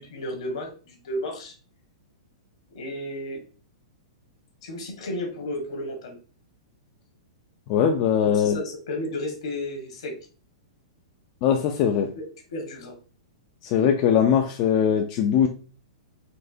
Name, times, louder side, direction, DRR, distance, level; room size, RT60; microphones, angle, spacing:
voice 1, 0.0-1.5 2.7-3.4 4.6-6.2 8.2-10.1 12.2-12.3 12.5-12.9, left 1 dB, 70° left, 1.4 m, -33 dB
voice 2, 7.7-8.6 11.4-12.1 13.6-15.5, left 8 dB, 40° left, 0.4 m, -21 dB
4.3 x 2.7 x 2.6 m
hypercardioid pair, 145°, 3 cm